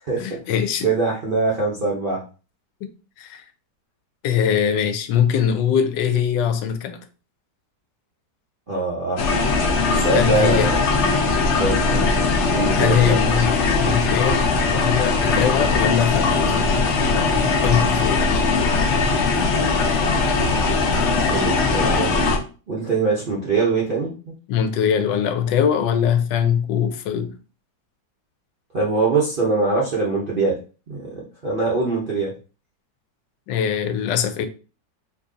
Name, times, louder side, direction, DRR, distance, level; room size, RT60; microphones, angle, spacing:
voice 1, 0.2-0.9 3.2-3.4 4.2-7.0 10.1-10.7 12.2-12.3 12.8-14.4 14.7-16.7 17.6-18.2 24.5-27.4 33.5-34.5, left 8 dB, 85° left, 1.2 m, -22 dB
voice 2, 0.8-2.2 8.7-9.2 9.9-10.7 11.6-12.1 12.5-13.2 21.0-22.2 22.7-24.3 28.7-30.6 30.9-32.3, right 3 dB, 55° right, 0.5 m, -23 dB
sound 1, 9.2-22.4, left 4 dB, 70° left, 0.7 m, -20 dB
2.9 x 2.6 x 3.7 m
omnidirectional pair, 1.9 m